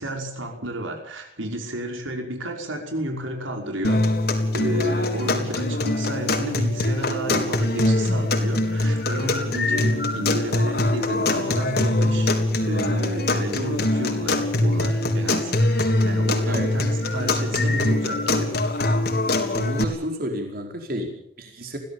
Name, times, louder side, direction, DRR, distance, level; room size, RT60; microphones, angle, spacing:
voice 1, 0.0-4.0 4.5-12.3 12.7-18.6, right 1 dB, 90° right, 3 dB, 5.5 m, -31 dB
sound 1, 3.8-19.8, left 2 dB, 55° left, 3.6 m, -23 dB
voice 2, 16.4-16.8 19.5-21.8, equal, 50° right, 2 dB, 4.8 m, -31 dB
22.5 x 17.0 x 8.9 m, 0.70 s
head